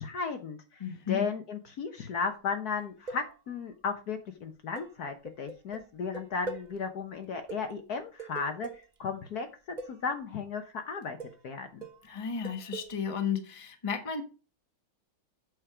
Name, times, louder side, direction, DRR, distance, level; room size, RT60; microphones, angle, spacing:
voice 1, 0.0-9.5 9.9-11.2 11.4-11.9, left 5 dB, 55° left, 6 dB, 1.4 m, -35 dB
voice 2, 0.8-1.2 12.0-14.2, left 7 dB, 20° left, 6 dB, 1.1 m, -33 dB
sound 1, 2.8-3.7 4.8-6.8 7.1-7.2 7.5-9.0 9.8-10.1 11.0-11.5 11.8-13.1, right 3 dB, 40° right, 0.6 m, -43 dB
7.9 x 6.3 x 4.9 m, 0.33 s
omnidirectional pair, 2.1 m